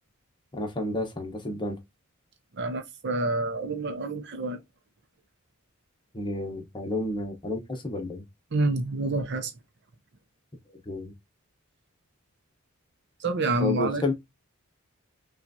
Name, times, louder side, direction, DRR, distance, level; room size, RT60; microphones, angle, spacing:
voice 1, 0.5-1.8 6.1-8.2 10.8-11.1 13.6-14.1, left 2 dB, 20° left, 1.0 m, -31 dB
voice 2, 2.6-4.6 8.5-9.5 13.2-14.0, right 2 dB, 55° right, 0.7 m, -28 dB
5.8 x 2.4 x 2.7 m
head